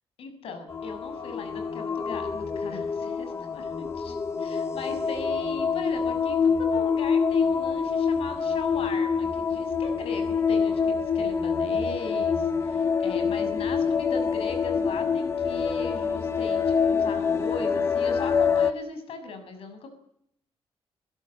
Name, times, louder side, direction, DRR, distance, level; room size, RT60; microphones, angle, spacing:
voice 1, 0.2-19.9, left 4 dB, 70° left, 8 dB, 6.5 m, -39 dB
sound 1, 0.7-18.7, left 6 dB, 25° left, 1.3 m, -26 dB
29.0 x 17.0 x 9.0 m, 0.74 s
wide cardioid pair, 170°, 10 cm